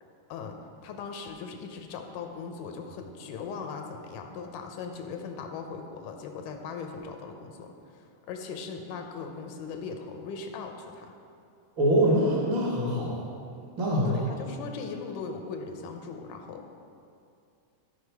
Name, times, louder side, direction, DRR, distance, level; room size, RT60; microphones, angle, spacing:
voice 1, 0.8-11.1 14.1-16.7, left 5 dB, 85° left, 4 dB, 2.2 m, -39 dB
voice 2, 11.8-13.2 13.8-14.1, equal, 45° right, -4 dB, 1.8 m, -24 dB
14.0 x 5.0 x 4.7 m, 2.5 s
omnidirectional pair, 3.7 m